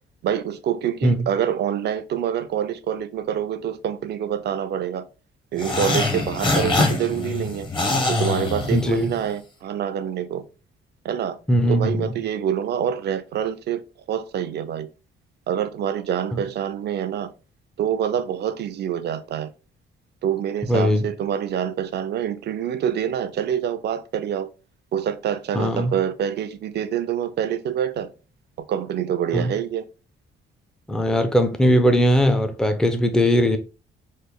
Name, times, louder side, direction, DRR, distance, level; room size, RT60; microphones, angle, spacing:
voice 1, 0.2-5.1 5.5-7.7 8.1-10.4 11.0-11.4 11.7-13.8 14.1-14.9 15.5-17.3 17.8-19.5 20.2-24.5 24.9-28.1 28.7-29.9, right 9 dB, 55° right, 0.5 m, -26 dB
sound 1, 5.6-9.3, left 2 dB, 25° left, 0.8 m, -24 dB
voice 2, 8.7-9.1 11.5-12.1 16.3-16.4 20.7-21.1 25.5-25.9 29.3-29.5 30.9-33.6, equal, 5° left, 0.5 m, -19 dB
3.2 x 2.1 x 3.4 m
cardioid pair, 90°, 20 cm